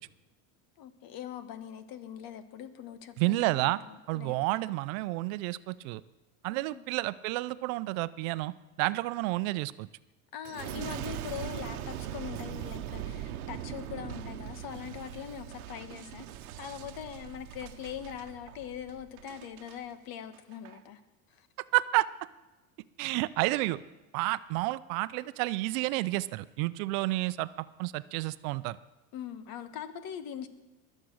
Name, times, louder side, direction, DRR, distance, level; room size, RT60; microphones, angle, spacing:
voice 1, 0.8-4.6 6.5-6.8 10.3-16.3 16.6-21.0 21.3-21.5 29.1-30.5, left 9 dB, 55° left, 11 dB, 1.5 m, -42 dB
voice 2, 3.2-3.8 4.1-6.0 6.4-8.5 8.8-9.9 21.7-22.1 23.0-23.8 24.1-27.5 27.8-28.8, right 20 dB, 70° right, 16 dB, 0.7 m, -30 dB
Boom, 10.4-19.8 20.3-20.8, right 11 dB, 85° right, 1.1 m, -41 dB
21.5 x 7.5 x 6.4 m, 1.1 s
supercardioid pair, 100°, 42 cm